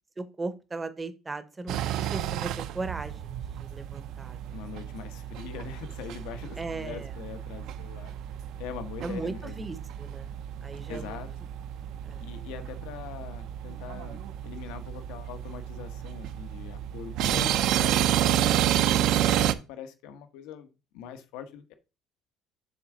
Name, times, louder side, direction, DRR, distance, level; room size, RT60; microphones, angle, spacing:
voice 1, 0.2-4.5 6.6-7.1 9.0-10.3 10.6-11.2 12.0-12.2, right 3 dB, 15° right, 11 dB, 0.7 m, -37 dB
sound 1, 1.7-19.5, right 12 dB, 60° right, 0.6 m, -30 dB
voice 2, 4.5-8.1 8.6-9.7 10.9-11.3 12.2-21.7, left 8 dB, 80° left, 9 dB, 1.0 m, -42 dB
7.0 x 3.6 x 6.0 m, 0.30 s
cardioid pair, 165°, 0 cm